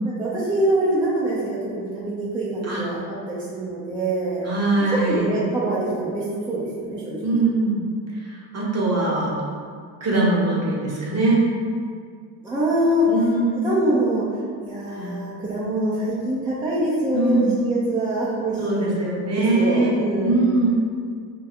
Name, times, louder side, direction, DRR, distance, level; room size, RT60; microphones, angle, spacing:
voice 1, 0.0-3.0 3.3-4.5 5.0-7.4 12.4-13.1 13.6-14.2 14.6-18.9 19.3-20.5, right 1 dB, 10° right, -8 dB, 0.4 m, -24 dB
voice 2, 4.4-5.3 7.2-7.8 8.1-9.3 10.0-11.4 13.1-13.6 14.9-15.2 17.1-17.5 18.6-19.9 20.2-20.7, right 2 dB, 30° right, -5 dB, 0.8 m, -22 dB
2.3 x 2.2 x 2.8 m, 2.1 s
hypercardioid pair, 65°, 48 cm